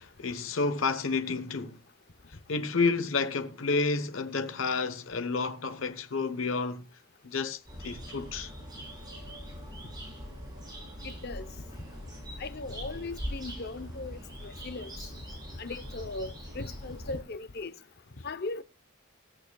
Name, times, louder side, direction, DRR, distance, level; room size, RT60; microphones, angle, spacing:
voice 1, 0.0-1.8 2.5-6.8 7.2-8.5, left 4 dB, 85° left, 1.0 m, -30 dB
sound 1, 7.7-17.2, equal, 20° right, 7.6 m, -42 dB
voice 2, 11.0-11.5 12.4-14.9 15.6-17.7 18.2-18.6, left 3 dB, 55° left, 0.8 m, -38 dB
16.0 x 15.0 x 2.3 m
head